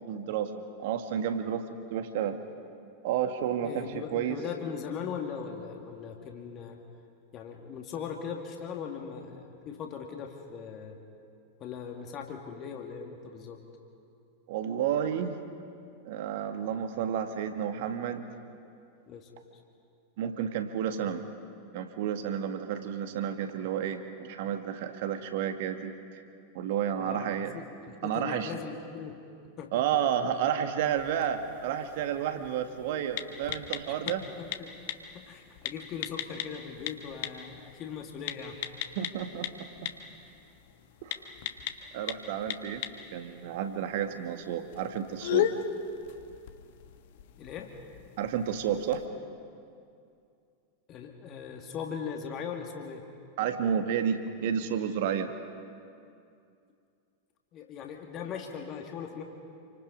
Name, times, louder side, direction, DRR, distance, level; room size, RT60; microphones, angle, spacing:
voice 1, 0.1-1.6 1.9-2.4 3.0-4.4 14.5-15.4 16.0-18.3 20.2-21.2 21.7-26.2 26.5-27.5 28.0-28.5 29.7-34.2 39.0-39.9 41.0-41.2 41.9-42.8 43.1-45.6 48.2-49.0 53.4-55.3, right 9 dB, 50° right, 7 dB, 1.8 m, -31 dB
voice 2, 3.6-6.8 7.3-11.0 11.6-13.6 19.1-19.6 27.0-29.2 29.6-29.8 34.1-34.7 35.1-38.6 47.4-47.7 50.9-53.0 57.5-59.2, left 7 dB, 35° left, 2 dB, 2.2 m, -39 dB
sound 1, 30.8-49.1, left 10 dB, 50° left, 1.4 m, -38 dB
28.5 x 25.5 x 5.4 m, 2.5 s
figure-of-eight pair, 90°, 0 cm